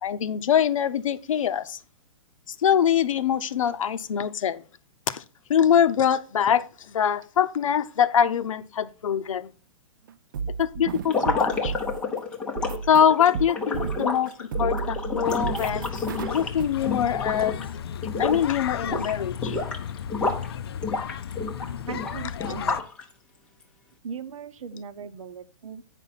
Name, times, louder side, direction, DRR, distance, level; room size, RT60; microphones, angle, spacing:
voice 1, 0.0-1.8 2.5-4.6 5.1-5.2 5.5-9.5 10.6-11.7 12.9-17.6 18.2-19.6, left 8 dB, 80° left, 0.8 m, -24 dB
sound 1, 10.1-12.1 12.6-14.3 14.5-16.7, right 6 dB, 40° right, 0.4 m, -33 dB
sound 2, 11.0-17.7 18.0-18.5 18.8-20.5 20.8-23.0, left 3 dB, 5° left, 0.6 m, -29 dB
sound 3, 15.2-22.8, left 8 dB, 50° left, 0.5 m, -35 dB
voice 2, 21.9-22.8 24.0-25.8, right 6 dB, 80° right, 1.0 m, -39 dB
9.2 x 5.4 x 4.0 m
hypercardioid pair, 175°, 17 cm